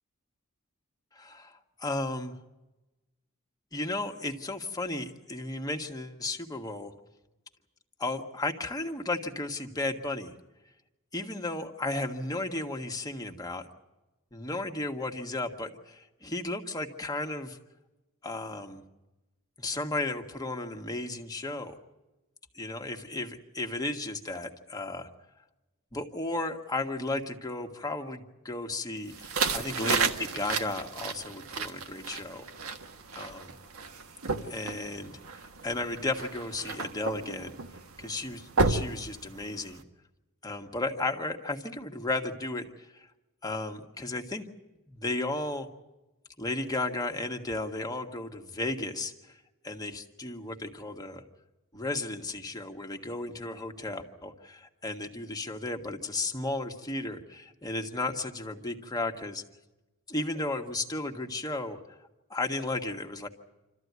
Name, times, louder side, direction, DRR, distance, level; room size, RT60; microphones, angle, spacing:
voice 1, 1.2-2.3 3.7-6.9 8.0-10.3 11.1-13.6 14.3-17.6 18.2-18.8 19.6-21.7 22.5-25.1 25.9-32.5 33.1-33.6 34.4-35.2 35.6-37.5 38.0-39.8 40.4-43.1 43.4-44.5 44.9-45.7 46.4-49.1 49.6-51.2 51.7-59.4 60.1-61.8 62.3-63.3, left 2 dB, 20° left, 3 dB, 1.6 m, -34 dB
sound 1, 29.1-39.8, right 4 dB, 80° right, 1.5 m, -33 dB
27.5 x 14.0 x 9.5 m, 1.1 s
head